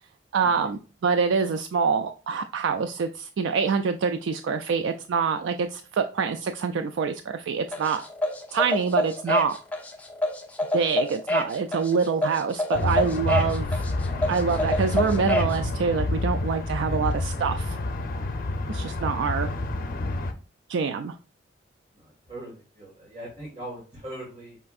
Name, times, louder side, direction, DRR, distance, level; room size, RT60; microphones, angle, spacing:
voice 1, 0.3-8.0 8.5-9.6 10.7-13.8 14.3-17.8 18.7-19.5 20.7-21.2, right 5 dB, 85° right, 7 dB, 0.3 m, -26 dB
sound 1, 7.7-15.6, left 1 dB, 10° left, 0.7 m, -27 dB
sound 2, 12.7-20.3, left 2 dB, 50° left, 0.6 m, -28 dB
voice 2, 21.9-24.6, right 1 dB, 35° right, -5 dB, 1.7 m, -40 dB
5.5 x 3.4 x 2.4 m, 0.36 s
head